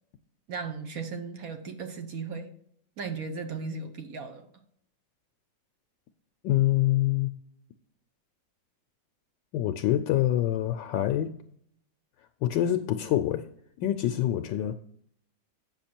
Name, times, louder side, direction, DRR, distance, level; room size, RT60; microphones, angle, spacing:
voice 1, 0.5-2.5 3.0-4.5, right 4 dB, 55° right, 6 dB, 1.2 m, -36 dB
voice 2, 6.4-7.3 9.5-11.3 12.4-13.5 13.8-14.7, left 13 dB, 75° left, 8 dB, 1.2 m, -25 dB
8.4 x 6.0 x 4.4 m, 0.67 s
omnidirectional pair, 2.1 m